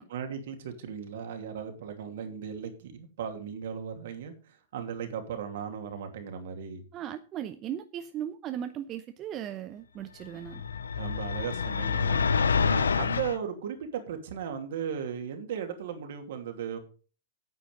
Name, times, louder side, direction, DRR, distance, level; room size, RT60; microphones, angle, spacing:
voice 1, 0.1-6.8 11.0-16.8, right 7 dB, 65° right, 2.7 m, -37 dB
voice 2, 6.9-10.6, right 10 dB, 35° right, 0.8 m, -37 dB
sound 1, 10.5-13.4, left 5 dB, 80° left, 0.7 m, -27 dB
9.5 x 8.6 x 5.2 m
hypercardioid pair, 100°, 0 cm